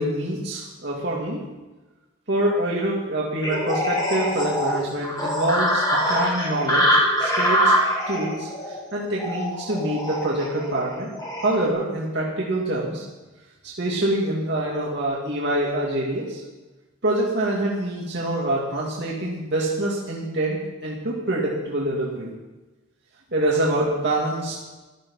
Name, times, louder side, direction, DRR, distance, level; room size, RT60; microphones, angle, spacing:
voice 1, 0.0-1.4 2.3-7.8 8.1-13.0 13.6-16.4 17.0-22.3 23.3-24.5, right 1 dB, 55° right, -4 dB, 2.5 m, -25 dB
sound 1, 3.4-11.7, equal, 20° left, 2.6 m, -24 dB
14.5 x 13.0 x 5.7 m, 1.2 s
head